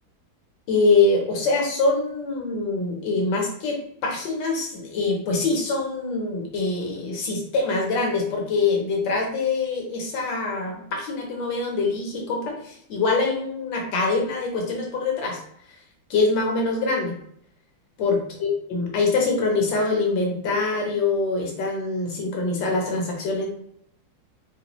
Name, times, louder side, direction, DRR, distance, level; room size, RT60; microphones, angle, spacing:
voice 1, 0.7-15.4 16.1-17.1 18.0-23.5, left 3 dB, 75° left, 1 dB, 1.5 m, -24 dB
4.1 x 2.3 x 2.9 m, 0.70 s
omnidirectional pair, 2.0 m